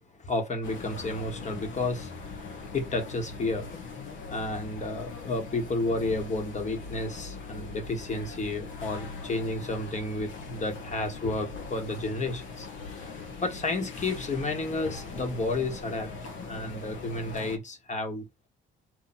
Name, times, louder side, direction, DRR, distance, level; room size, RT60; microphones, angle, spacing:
voice 1, 0.1-3.7 4.3-18.5, left 2 dB, 35° left, 1.3 m, -32 dB
sound 1, 0.6-17.6, left 4 dB, 70° left, 1.1 m, -41 dB
4.4 x 2.6 x 4.3 m
cardioid pair, 90°, 20 cm